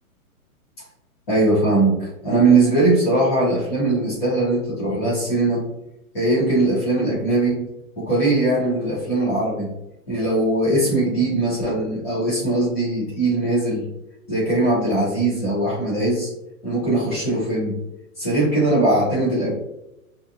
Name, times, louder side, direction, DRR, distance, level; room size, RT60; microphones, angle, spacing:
voice 1, 1.3-5.6 6.1-7.6 8.0-9.7 10.1-13.9 14.3-16.3 16.6-17.8 18.2-19.5, right 2 dB, 10° left, -10 dB, 0.7 m, -20 dB
4.1 x 2.5 x 2.6 m, 0.90 s
hypercardioid pair, 180°, 44 cm